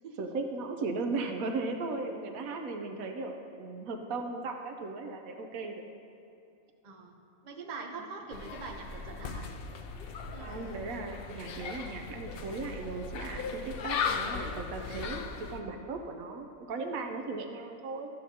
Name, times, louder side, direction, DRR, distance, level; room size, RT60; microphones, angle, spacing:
voice 1, 0.2-5.9 10.4-18.1, right 3 dB, 80° right, 4 dB, 1.1 m, -37 dB
voice 2, 6.8-7.2 7.4-9.5 10.3-10.8, right 4 dB, 40° right, 1 dB, 0.8 m, -43 dB
sound 1, 8.3-15.6, left 5 dB, 60° left, 0.6 m, -37 dB
13.5 x 7.6 x 2.8 m, 2.7 s
omnidirectional pair, 1.5 m